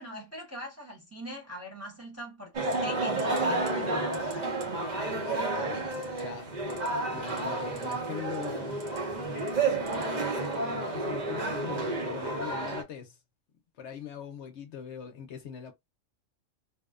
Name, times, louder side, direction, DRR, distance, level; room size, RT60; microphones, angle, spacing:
voice 1, 0.0-4.5, equal, 15° right, 0.9 m, -42 dB
sound 1, 2.5-12.8, right 2 dB, 45° right, 0.7 m, -31 dB
sound 2, 2.7-2.9 3.2-3.4 3.7-3.9 4.1-4.4 4.6-4.7 5.9-6.2 6.6-6.9 7.2-7.9 8.3-9.0 9.4-10.0 10.4-10.6, right 5 dB, 85° right, 1.1 m, -47 dB
voice 2, 5.2-8.8 9.2-9.9 10.7-13.2 13.8-15.7, left 8 dB, 65° left, 0.8 m, -42 dB
2.5 x 2.1 x 2.3 m
omnidirectional pair, 1.3 m